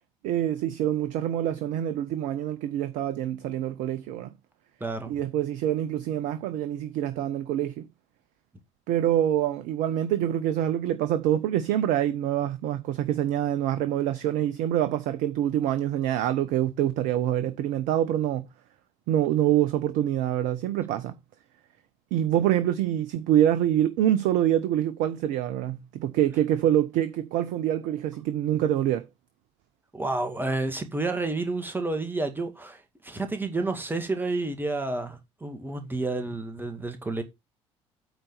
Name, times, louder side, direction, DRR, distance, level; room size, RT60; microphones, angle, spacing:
voice 1, 0.2-4.3 5.1-7.9 8.9-18.5 19.1-21.1 22.1-29.0, right 11 dB, 55° right, 0.8 m, -25 dB
voice 2, 4.8-5.1 29.9-37.2, right 2 dB, 15° right, 2.1 m, -30 dB
9.0 x 4.1 x 6.9 m
figure-of-eight pair, 55°, 16 cm